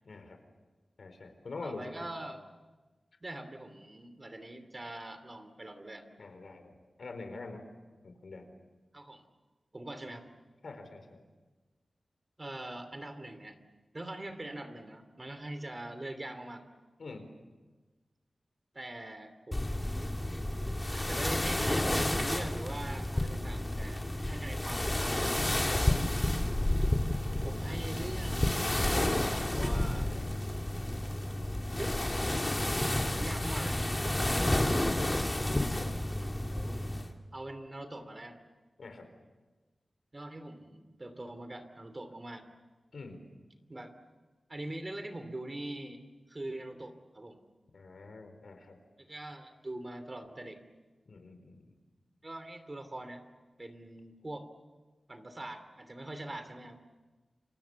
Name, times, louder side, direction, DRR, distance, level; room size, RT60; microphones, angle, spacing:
voice 1, 0.0-0.4 1.0-2.1 6.2-7.7 8.0-8.5 10.6-11.2 17.0-17.3 25.7-26.0 29.8-30.5 35.8-36.1 38.8-39.1 42.9-43.3 47.7-48.8 51.1-51.7, left 3 dB, 75° left, 7 dB, 4.3 m, -45 dB
voice 2, 1.6-2.4 3.2-6.1 8.9-9.2 9.7-10.3 12.4-13.5 13.9-16.6 18.7-20.1 20.9-25.3 27.4-30.1 31.8-32.0 32.9-33.9 36.5-36.8 37.3-38.4 40.1-42.4 43.7-43.9 44.5-46.0 46.3-47.4 49.0-50.6 52.2-53.2 53.6-54.5 55.1-56.8, right 1 dB, 30° right, 9 dB, 2.9 m, -43 dB
sound 1, 19.5-37.1, left 1 dB, 20° left, 2.3 m, -31 dB
29.5 x 25.5 x 7.2 m, 1.2 s
wide cardioid pair, 75°, 0 cm